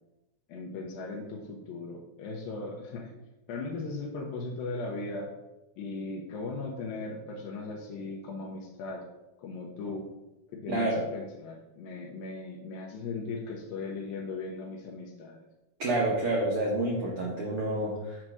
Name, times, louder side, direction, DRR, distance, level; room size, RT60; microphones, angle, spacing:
voice 1, 0.5-3.1 3.5-5.3 5.8-9.0 9.4-10.0 10.5-15.4, left 3 dB, 75° left, -1 dB, 2.4 m, -38 dB
voice 2, 10.7-11.1 15.8-18.2, right 2 dB, 85° right, -3 dB, 1.2 m, -28 dB
7.6 x 3.3 x 6.1 m, 1.0 s
omnidirectional pair, 4.3 m